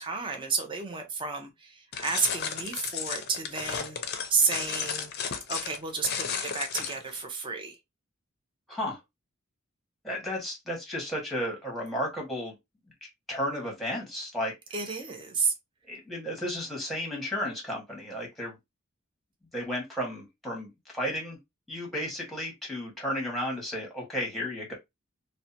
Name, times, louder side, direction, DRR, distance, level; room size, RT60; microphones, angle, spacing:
voice 1, 0.0-4.0 4.3-5.1 5.5-7.8 14.7-15.5, right 5 dB, 25° right, 0.5 m, -31 dB
sound 1, 1.9-7.2, left 7 dB, 50° left, 0.5 m, -34 dB
voice 2, 10.0-12.5 13.3-14.5 15.9-18.6 19.5-20.7 20.9-21.4 21.7-24.7, equal, ahead, 1.2 m, -33 dB
2.6 x 2.1 x 2.5 m
head